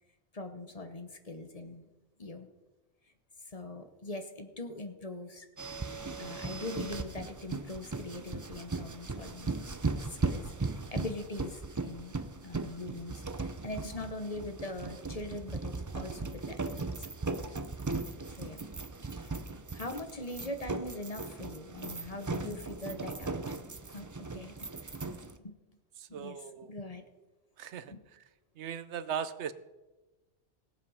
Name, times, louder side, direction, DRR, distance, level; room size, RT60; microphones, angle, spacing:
voice 1, 0.3-1.8 2.2-2.5 3.4-5.5 6.2-9.5 10.0-12.2 12.4-17.1 18.4-18.6 19.2-19.4 19.7-23.6 23.9-24.1 24.3-24.9 25.4-25.6 26.1-27.0 27.9-28.0, left 2 dB, 35° left, 7 dB, 1.0 m, -42 dB
sound 1, 5.6-25.4, right 3 dB, 25° right, 0.4 m, -38 dB
voice 2, 26.0-26.7 27.6-28.2 28.6-29.5, right 8 dB, 85° right, 14 dB, 1.0 m, -38 dB
17.5 x 7.5 x 5.6 m, 1.1 s
omnidirectional pair, 1.1 m